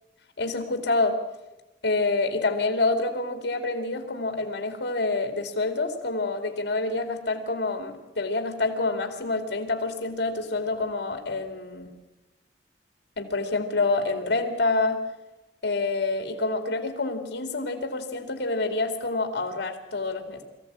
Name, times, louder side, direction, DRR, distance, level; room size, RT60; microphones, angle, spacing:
voice 1, 0.4-1.2 1.8-11.9 13.2-15.0 15.6-20.4, left 3 dB, 85° left, 6 dB, 2.5 m, -27 dB
23.0 x 15.0 x 8.7 m, 1.0 s
head